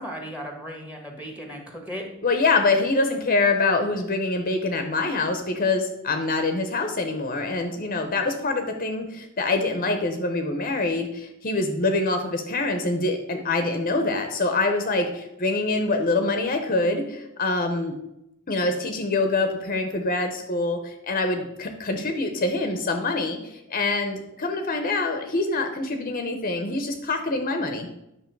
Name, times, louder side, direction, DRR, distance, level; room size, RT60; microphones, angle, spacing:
voice 1, 0.0-2.1, equal, 5° right, 2 dB, 1.4 m, -36 dB
voice 2, 2.2-17.9 18.5-27.9, left 3 dB, 40° left, 6 dB, 0.8 m, -25 dB
9.4 x 6.1 x 4.6 m, 0.87 s
head